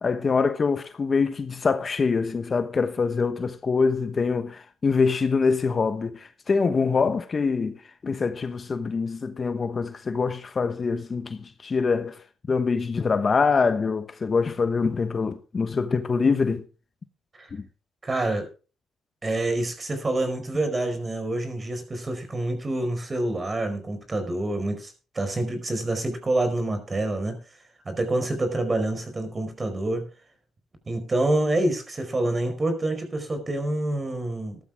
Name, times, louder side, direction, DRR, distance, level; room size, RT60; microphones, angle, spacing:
voice 1, 0.0-12.2 12.5-16.6 17.5-17.6, left 4 dB, 35° left, 1.1 m, -24 dB
voice 2, 18.0-18.5 19.2-27.4 27.8-30.1 30.9-34.6, right 2 dB, 30° right, 4.7 m, -27 dB
14.5 x 12.0 x 3.5 m
cardioid pair, 90°, 0 cm